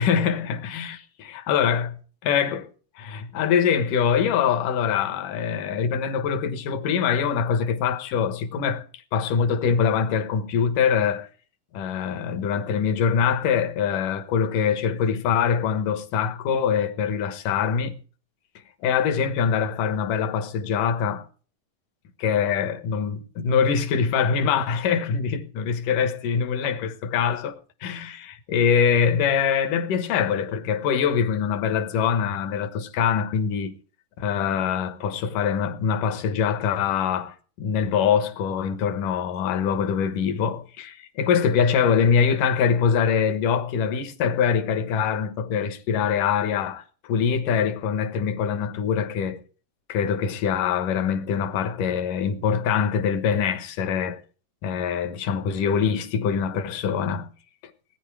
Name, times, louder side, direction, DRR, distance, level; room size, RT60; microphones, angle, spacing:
voice 1, 0.0-2.0 2.2-2.7 3.0-11.3 11.7-18.0 18.8-21.3 22.2-27.5 27.8-33.7 34.2-49.4 49.9-54.2 54.6-57.3, left 7 dB, 70° left, 2.7 m, -24 dB
19.0 x 9.6 x 4.7 m
omnidirectional pair, 4.0 m